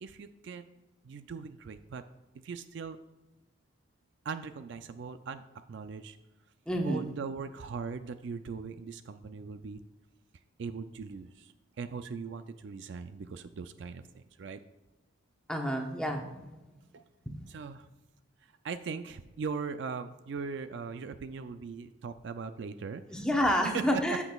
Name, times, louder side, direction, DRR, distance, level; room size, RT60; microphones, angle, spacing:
voice 1, 0.0-0.7 1.0-2.0 2.4-3.0 4.2-6.2 6.8-9.8 10.6-14.6 16.9-17.0 17.5-17.9 18.6-24.0, right 5 dB, 60° right, 10 dB, 0.3 m, -40 dB
voice 2, 6.7-7.1 15.5-16.5 17.3-17.4 23.1-24.2, equal, 5° left, 1 dB, 0.9 m, -29 dB
14.0 x 6.0 x 2.3 m, 1.1 s
head